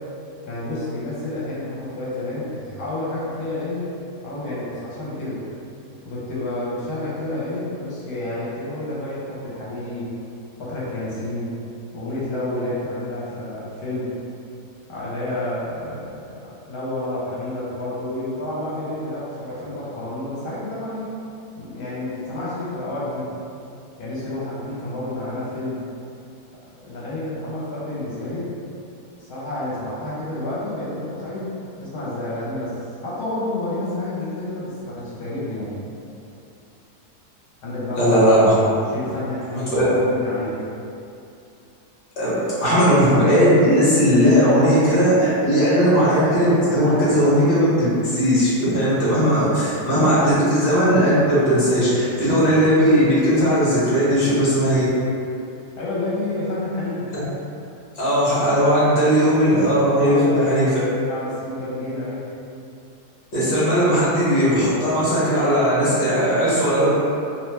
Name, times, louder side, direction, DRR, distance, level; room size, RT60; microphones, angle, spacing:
voice 1, 0.4-3.9 4.2-5.4 6.0-10.1 10.6-11.5 11.9-14.1 14.9-21.1 21.6-23.3 24.0-25.8 26.7-28.6 29.2-35.8 37.6-38.2 38.9-40.6 55.8-57.1 60.0-62.3, left 1 dB, 70° left, -8 dB, 1.2 m, -29 dB
voice 2, 38.0-38.5 39.5-39.8 42.2-54.9 57.1-57.2 58.0-60.7 63.3-66.9, equal, 45° left, -10 dB, 1.1 m, -17 dB
2.8 x 2.2 x 3.1 m, 2.6 s
omnidirectional pair, 1.7 m